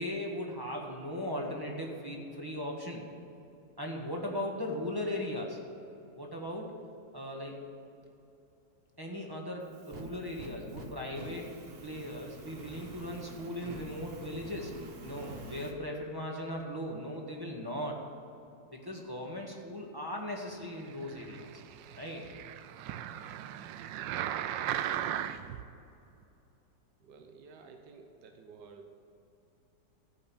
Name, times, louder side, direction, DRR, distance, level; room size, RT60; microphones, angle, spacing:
voice 1, 0.0-3.0 3.8-5.6 6.1-6.7 7.1-7.6 9.0-11.4 11.8-14.7 15.0-18.0 18.7-21.5 21.9-22.2, left 1 dB, 15° right, -1 dB, 1.4 m, -38 dB
Fire, 9.6-15.7, right 3 dB, 40° right, 1.1 m, -47 dB
sound 1, 21.0-25.6 26.2-26.3, right 11 dB, 90° right, 1.3 m, -37 dB
voice 2, 27.0-29.0, right 5 dB, 70° right, 4 dB, 1.5 m, -52 dB
14.0 x 5.5 x 8.6 m, 2.8 s
omnidirectional pair, 2.0 m